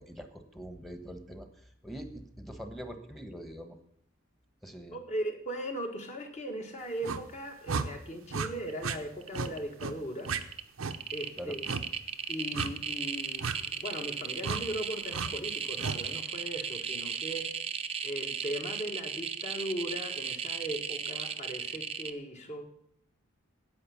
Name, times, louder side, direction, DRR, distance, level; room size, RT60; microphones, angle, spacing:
voice 1, 0.0-1.5 1.8-3.8 4.6-5.0 11.4-11.6, equal, ahead, 7 dB, 1.2 m, -43 dB
voice 2, 4.9-10.3 11.1-11.7 12.3-17.5 18.0-22.7, right 1 dB, 35° left, 4 dB, 1.7 m, -38 dB
sound 1, 7.0-7.2 7.7-7.9 8.3-8.5 8.8-9.0 9.3-9.5 9.8-9.9 10.2-10.4 10.8-11.0 11.6-11.8 12.5-12.7 13.4-13.6 14.4-14.6 15.1-15.3 15.8-16.0, right 5 dB, 90° right, 0.8 m, -33 dB
sound 2, 8.7-9.0 9.2-9.8 10.2-22.1, right 7 dB, 30° right, 0.6 m, -36 dB
9.8 x 8.7 x 7.1 m, 0.68 s
head